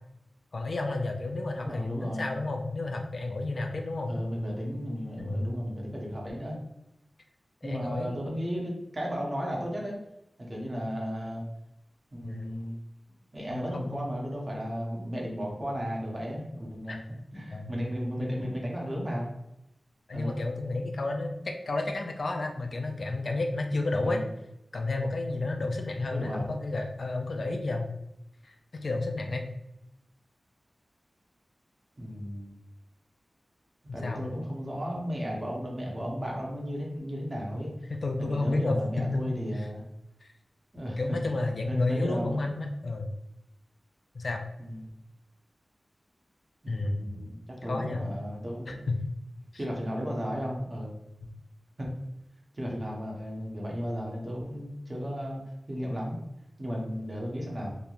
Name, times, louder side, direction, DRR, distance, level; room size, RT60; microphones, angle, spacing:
voice 1, 0.5-4.1 5.2-5.5 7.6-8.2 12.2-12.5 13.5-14.1 16.9-17.0 17.5-17.7 18.2-18.4 20.1-24.2 24.7-27.9 28.4-28.5 28.8-29.5 34.0-34.2 37.9-39.2 40.2-40.3 41.0-43.1 44.1-44.4 46.7-47.3 47.7-48.0 48.7-48.8 51.2-51.3, left 2 dB, 65° left, 3 dB, 0.3 m, -31 dB
voice 2, 1.5-2.3 4.1-6.6 7.6-10.0 10.4-11.4 12.1-12.8 13.3-17.0 17.3-19.3 20.1-20.4 24.0-24.3 26.1-26.5 32.0-32.6 33.9-37.7 38.2-39.8 40.7-41.2 41.7-42.5 44.6-44.9 46.6-48.8 49.6-50.9 51.8-51.9 52.5-55.4 55.7-56.2 56.6-57.7, equal, 30° right, -2 dB, 0.8 m, -34 dB
3.0 x 2.1 x 2.4 m, 0.84 s
wide cardioid pair, 85°, 0 cm